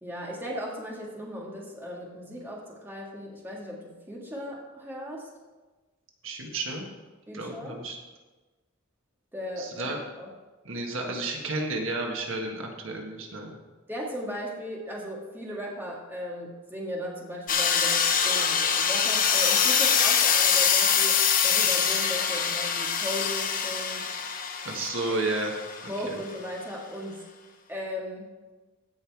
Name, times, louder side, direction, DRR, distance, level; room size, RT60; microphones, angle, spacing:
voice 1, 0.0-5.3 7.3-7.8 9.3-9.9 10.2-10.3 13.9-24.1 25.9-27.2 27.7-28.3, equal, 10° right, -3 dB, 1.7 m, -37 dB
voice 2, 6.2-6.9 7.3-8.0 9.6-10.0 10.6-13.6 24.6-25.5 25.8-26.2, right 2 dB, 70° right, 1 dB, 1.6 m, -32 dB
sound 1, 17.5-26.1, left 7 dB, 40° left, 0.8 m, -24 dB
16.0 x 5.6 x 4.7 m, 1.2 s
head